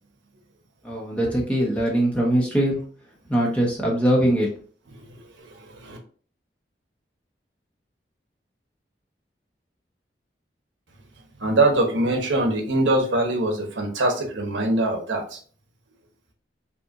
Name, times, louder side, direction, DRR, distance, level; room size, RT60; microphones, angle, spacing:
voice 1, 0.8-2.8 3.3-4.5, right 1 dB, 5° left, 1.0 m, -21 dB
voice 2, 5.4-6.0 11.4-15.4, right 2 dB, 90° right, 1.0 m, -23 dB
5.4 x 2.6 x 2.5 m
head